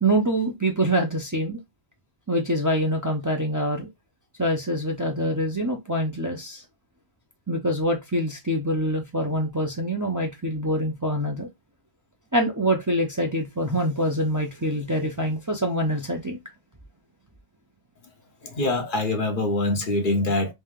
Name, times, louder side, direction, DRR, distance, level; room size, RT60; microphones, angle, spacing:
voice 1, 0.0-1.6 2.3-3.9 4.4-6.6 7.5-11.5 12.3-16.4, right 1 dB, 20° right, 0.6 m, -25 dB
voice 2, 18.4-20.5, left 2 dB, 55° left, 0.9 m, -24 dB
3.2 x 2.8 x 3.5 m
omnidirectional pair, 1.1 m